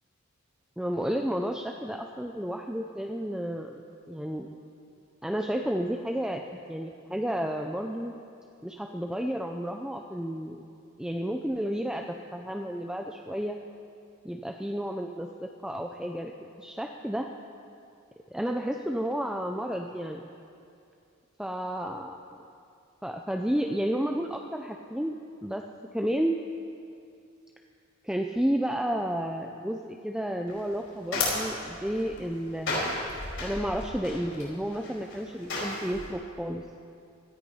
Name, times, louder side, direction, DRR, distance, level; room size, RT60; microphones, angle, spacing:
voice 1, 0.8-3.8 4.1-4.5 5.2-8.1 8.6-10.6 11.0-13.6 14.2-17.3 18.3-20.3 21.4-22.5 23.0-25.2 25.4-25.6 25.9-26.4 28.0-33.0 33.4-36.6, equal, 5° right, 3 dB, 0.4 m, -31 dB
sound 1, 30.5-36.1, left 2 dB, 60° left, 4.8 m, -34 dB
17.5 x 13.0 x 5.5 m, 2.5 s
head